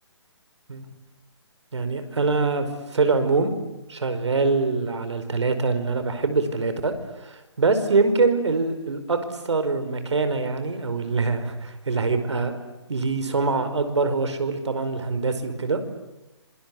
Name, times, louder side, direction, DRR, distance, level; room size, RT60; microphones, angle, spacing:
voice 1, 1.7-2.7 2.9-3.5 3.9-6.9 7.2-9.2 9.5-12.5 12.9-15.8, right 4 dB, 75° right, 9 dB, 5.1 m, -24 dB
26.5 x 25.5 x 8.5 m, 1.0 s
hypercardioid pair, 170°, 15 cm